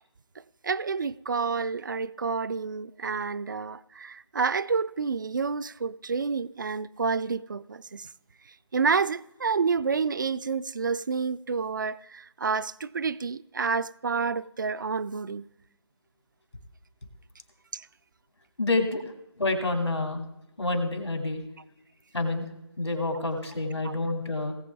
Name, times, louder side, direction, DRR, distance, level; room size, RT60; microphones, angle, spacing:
voice 1, 0.6-8.1 8.7-15.5 17.7-17.9 23.8-23.9, right 5 dB, 45° right, 0.4 m, -29 dB
voice 2, 18.6-19.1 19.4-20.2 20.6-21.4 22.1-22.5 22.8-24.5, left 2 dB, 85° left, 2.6 m, -28 dB
18.5 x 7.7 x 3.5 m
figure-of-eight pair, 155°, 14 cm